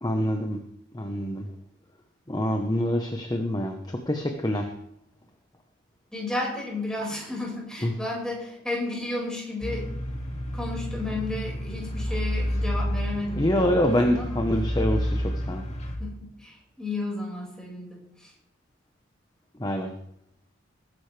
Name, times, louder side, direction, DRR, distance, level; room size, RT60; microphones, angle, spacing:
voice 1, 0.0-0.6 0.9-1.5 2.3-4.7 7.8-7.9 13.4-15.6 19.6-19.9, left 1 dB, 20° left, 4 dB, 1.1 m, -26 dB
voice 2, 6.1-9.8 10.5-13.8 14.1-14.4 16.0-18.0, left 2 dB, 5° left, -3 dB, 5.3 m, -33 dB
sound 1, 9.6-16.0, equal, 35° left, 2.3 m, -30 dB
20.5 x 10.5 x 3.4 m, 0.74 s
head